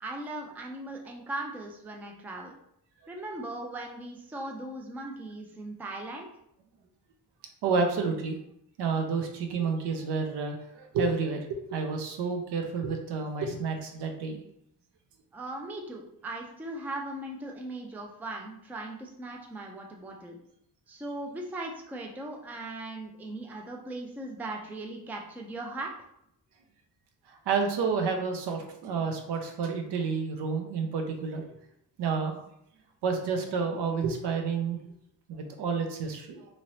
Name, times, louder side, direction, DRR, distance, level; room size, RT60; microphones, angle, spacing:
voice 1, 0.0-2.5 3.1-6.3 15.3-20.4 20.9-25.9, right 2 dB, 5° right, 1 dB, 0.3 m, -38 dB
voice 2, 7.6-8.4 8.8-14.4 27.3-31.5 32.0-32.4 33.0-34.8 35.3-36.5, right 5 dB, 80° right, 4 dB, 0.7 m, -30 dB
2.9 x 2.7 x 3.1 m, 0.74 s
cardioid pair, 130°, 40 cm